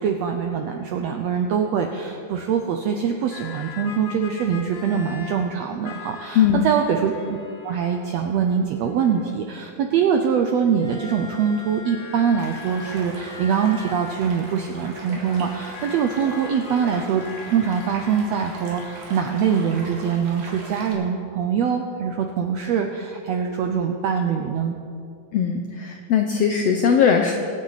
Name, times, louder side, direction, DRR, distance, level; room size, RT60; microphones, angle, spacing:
voice 1, 0.0-7.4 7.6-24.7, right 7 dB, 80° right, 4 dB, 1.5 m, -23 dB
sound 1, 3.3-5.5 5.8-9.7 10.8-19.8, left 5 dB, 65° left, 3.2 m, -41 dB
voice 2, 6.3-6.7 25.3-27.3, left 7 dB, 80° left, 4 dB, 1.4 m, -19 dB
Stream, 12.4-20.9, right 2 dB, 65° right, 3.2 m, -40 dB
24.5 x 8.8 x 4.1 m, 2.4 s
omnidirectional pair, 3.8 m